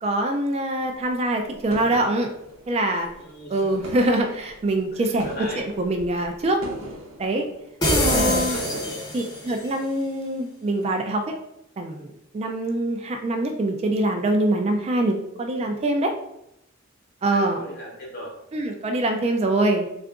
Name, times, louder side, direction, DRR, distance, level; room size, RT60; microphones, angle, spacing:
voice 1, 0.0-2.3 2.7-3.1 3.5-5.3 5.6-6.6 7.2-7.4 8.0-8.6 9.1-11.2 11.8-16.1 17.2-17.6 18.5-19.9, right 1 dB, 30° right, 4 dB, 0.3 m, -24 dB
sound 1, 0.8-3.5 3.7-9.6, right 1 dB, 90° right, 0.8 m, -41 dB
voice 2, 3.1-3.9 4.9-5.7 8.1-9.0 17.2-18.3, equal, 50° left, -1 dB, 0.8 m, -39 dB
sound 2, 7.8-9.6, left 1 dB, 20° left, 0.6 m, -23 dB
3.7 x 2.4 x 3.4 m, 0.81 s
head